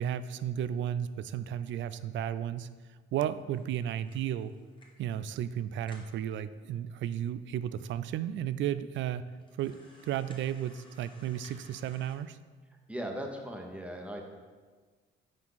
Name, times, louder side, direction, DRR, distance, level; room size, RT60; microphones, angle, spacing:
voice 1, 0.0-2.7 3.1-4.5 5.0-9.2 9.6-12.4, right 10 dB, 70° right, 14 dB, 0.4 m, -33 dB
sound 1, 3.5-5.1 5.5-5.6 5.8-6.2 6.9-7.0 7.2-7.3 8.0-8.1 8.6-8.7 9.4-12.1, left 1 dB, 25° left, 1.4 m, -58 dB
voice 2, 12.9-14.2, equal, 5° right, 1 dB, 1.2 m, -38 dB
6.0 x 4.5 x 5.7 m, 1.4 s
cardioid pair, 90°, 20 cm